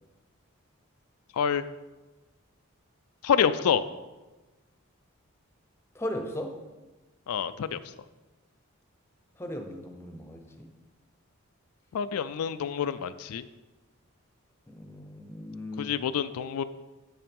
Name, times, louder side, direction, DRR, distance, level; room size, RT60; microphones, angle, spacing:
voice 1, 1.3-1.6 3.2-3.9 7.3-7.8 11.9-13.4 15.8-16.6, left 7 dB, 85° left, 12 dB, 0.4 m, -27 dB
voice 2, 5.9-6.6 9.4-10.7 14.7-15.9, left 1 dB, 10° left, 5 dB, 0.7 m, -37 dB
7.2 x 5.7 x 5.3 m, 1.1 s
head